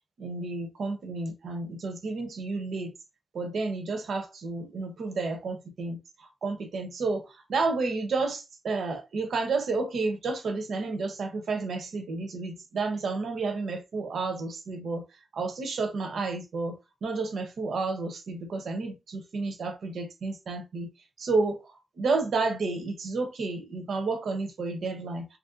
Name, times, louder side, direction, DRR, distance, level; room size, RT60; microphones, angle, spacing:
voice 1, 0.2-2.9 3.3-15.0 15.3-20.9 21.2-21.6 22.0-25.3, right 3 dB, 75° right, 0.7 m, -31 dB
3.0 x 2.5 x 2.5 m
wide cardioid pair, 165°, 0 cm